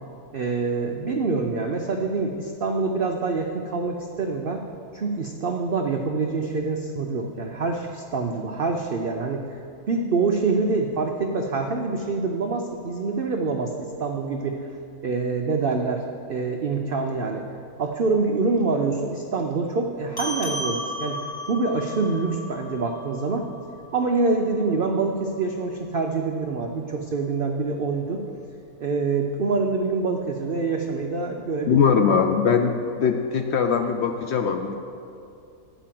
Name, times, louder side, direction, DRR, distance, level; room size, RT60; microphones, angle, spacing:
voice 1, 0.3-4.6 4.9-9.6 9.9-14.7 15.0-16.0 16.3-17.4 17.8-23.5 23.9-28.2 28.8-31.9, right 4 dB, 70° right, 2 dB, 0.5 m, -26 dB
sound 1, 20.2-25.0, left 1 dB, 15° left, 1.1 m, -35 dB
voice 2, 31.7-34.8, left 6 dB, 75° left, 5 dB, 0.6 m, -21 dB
10.0 x 5.0 x 7.5 m, 2.6 s
omnidirectional pair, 1.7 m